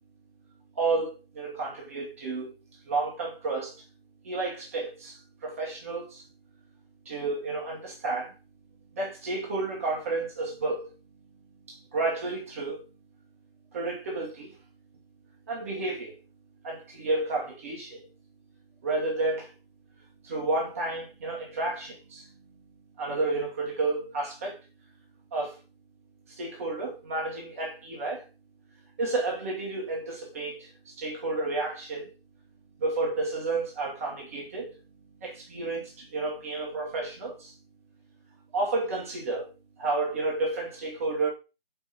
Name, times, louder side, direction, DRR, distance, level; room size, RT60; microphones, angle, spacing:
voice 1, 0.7-2.5 2.8-3.8 4.2-6.3 7.0-8.3 8.9-10.9 11.7-12.8 13.7-14.5 15.5-16.2 16.6-18.0 18.8-19.5 20.2-22.3 23.0-24.6 25.3-25.6 26.3-28.3 29.0-32.1 32.8-34.8 35.2-37.5 38.5-39.5 39.8-41.3, right 3 dB, 15° right, 0.9 m, -31 dB
6.2 x 4.4 x 5.6 m
figure-of-eight pair, 160°, 29 cm